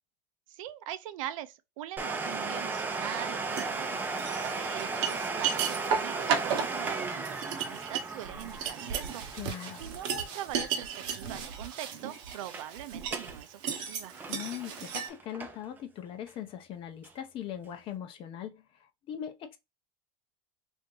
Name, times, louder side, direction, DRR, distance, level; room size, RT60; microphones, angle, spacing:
voice 1, 0.5-9.3 9.8-14.1, right 12 dB, 85° right, 0.5 m, -42 dB
Domestic sounds home sounds, 2.0-11.4 11.7-11.8 12.3-12.7 13.0-13.4 13.7-15.8 16.3-16.4 17.0-17.1, right 4 dB, 10° right, 0.5 m, -36 dB
sound 1, 3.5-3.7 4.2-15.1, right 7 dB, 50° right, 0.9 m, -34 dB
voice 2, 9.3-9.8 14.3-19.6, left 10 dB, 30° left, 0.6 m, -40 dB
2.9 x 2.6 x 3.7 m
supercardioid pair, 155°, 17 cm